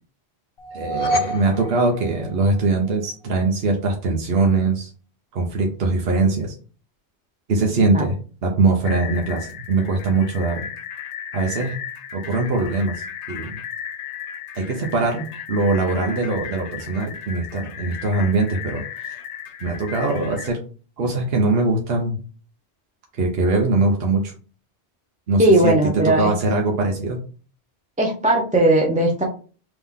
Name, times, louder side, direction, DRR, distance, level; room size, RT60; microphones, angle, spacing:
sound 1, 0.6-2.9, equal, 65° left, 0.8 m, -27 dB
voice 1, 0.7-4.9 5.3-6.5 7.5-10.7 11.3-11.8 12.1-13.6 14.5-19.2 19.6-20.6 21.0-22.2 23.2-24.3 25.3-25.7 26.0-27.2, right 3 dB, 65° right, 1 dB, 1.1 m, -22 dB
sound 2, 8.8-20.5, left 9 dB, 90° left, 0.9 m, -35 dB
voice 2, 25.4-26.3 28.0-29.2, right 1 dB, 10° right, 0 dB, 0.7 m, -17 dB
3.8 x 3.0 x 3.6 m, 0.38 s
omnidirectional pair, 1.1 m